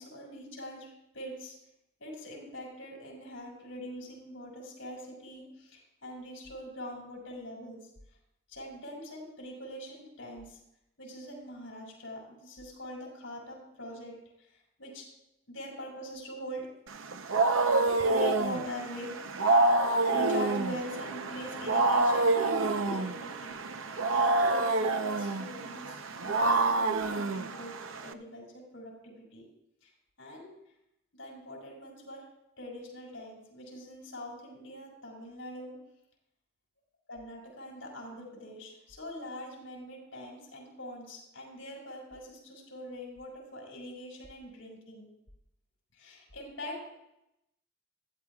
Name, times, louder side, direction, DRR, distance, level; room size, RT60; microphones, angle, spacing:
voice 1, 0.0-1.5 2.0-7.9 8.5-10.6 11.0-14.2 14.5-15.1 15.5-16.7 17.1-17.2 17.8-19.2 19.6-23.6 24.1-27.7 28.0-29.5 29.8-29.9 30.2-30.5 31.1-32.3 32.6-35.7 37.1-45.1 45.9-46.9, equal, 70° left, -3 dB, 6.1 m, -43 dB
Wild animals, 16.9-28.1, right 3 dB, 85° right, 0.8 m, -27 dB
22.0 x 14.0 x 2.4 m, 0.83 s
head